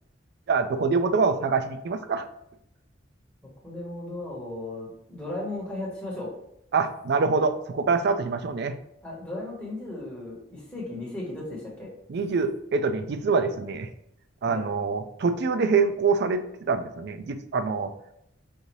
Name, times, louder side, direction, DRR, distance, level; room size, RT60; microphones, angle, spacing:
voice 1, 0.5-2.2 6.7-8.8 12.1-13.9 14.4-17.9, right 4 dB, 60° right, 9 dB, 0.4 m, -25 dB
voice 2, 3.6-6.3 9.0-11.9 14.4-14.6, left 2 dB, 5° left, -5 dB, 1.4 m, -35 dB
5.3 x 2.7 x 3.1 m, 0.79 s
head